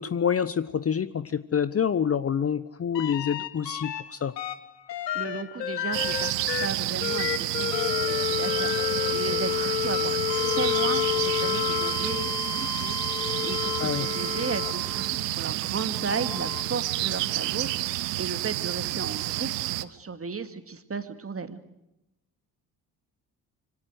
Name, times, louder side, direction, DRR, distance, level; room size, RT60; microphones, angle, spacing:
voice 1, 0.0-4.3 13.8-14.1, left 7 dB, 30° left, 16 dB, 1.0 m, -27 dB
sound 1, 2.9-4.0 4.4-15.1 16.0-17.5 19.3-19.4, left 12 dB, 80° left, 1.4 m, -30 dB
voice 2, 5.1-6.3 6.6-8.7 9.1-13.0 13.4-17.7 18.2-19.5 19.8-21.6, right 5 dB, 25° right, 9 dB, 2.5 m, -35 dB
sound 2, 5.9-19.8, right 17 dB, 70° right, 1.0 m, -30 dB
27.0 x 24.5 x 6.5 m, 0.88 s
figure-of-eight pair, 45°, 49 cm